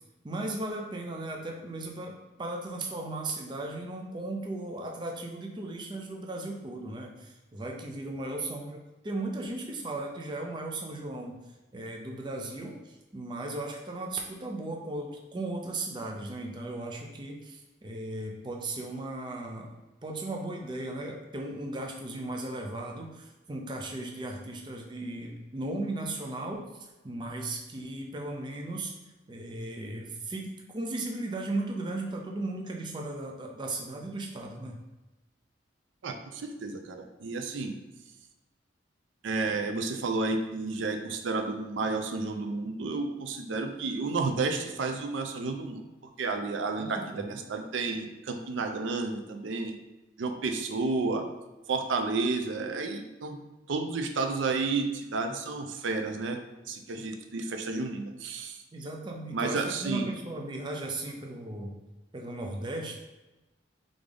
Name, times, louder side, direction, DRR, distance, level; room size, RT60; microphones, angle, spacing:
voice 1, 0.2-11.4 11.7-19.7 20.0-28.9 29.3-34.8 46.8-47.4 58.7-61.7 62.1-63.0, right 2 dB, 25° right, 1 dB, 0.4 m, -36 dB
voice 2, 36.0-37.7 39.2-45.8 46.2-49.7 50.2-51.2 51.7-53.4 53.7-56.4 56.7-58.6 59.3-60.1, right 3 dB, 80° right, 5 dB, 0.5 m, -31 dB
3.6 x 3.4 x 3.7 m, 1.1 s
head